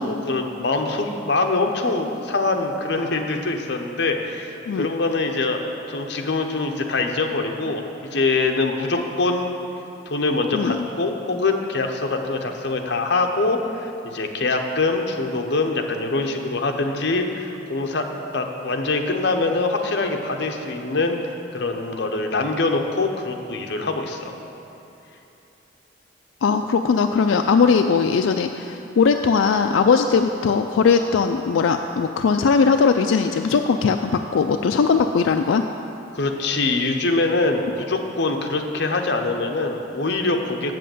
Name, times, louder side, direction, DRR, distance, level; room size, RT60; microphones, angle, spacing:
voice 1, 0.0-7.8 8.1-9.5 10.1-18.1 18.3-21.2 21.5-24.3 36.1-40.7, left 3 dB, 60° left, 3 dB, 0.8 m, -24 dB
voice 2, 26.4-35.7, left 5 dB, 85° left, 6 dB, 0.4 m, -19 dB
7.7 x 7.5 x 7.7 m, 2.9 s
head